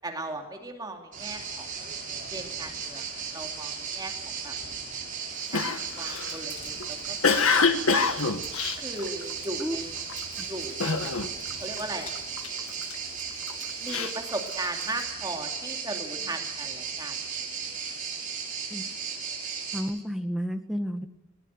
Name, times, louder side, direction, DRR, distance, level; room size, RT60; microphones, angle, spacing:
voice 1, 0.0-1.7 2.3-3.1 3.3-4.1 4.4-4.5 5.5-8.1 8.8-9.9 10.5-11.3 11.6-12.1 13.8-17.5 17.9-18.0, right 2 dB, 20° right, 3 dB, 2.5 m, -37 dB
sound 1, 1.1-19.8, right 6 dB, 40° right, 6.4 m, -36 dB
Cough, 5.5-9.6 10.1-10.4 10.8-11.5 11.8-12.9 13.5-15.0, left 5 dB, 90° left, 1.7 m, -26 dB
voice 2, 19.7-21.1, equal, ahead, 6 dB, 1.7 m, -31 dB
21.5 x 19.5 x 8.1 m, 0.89 s
head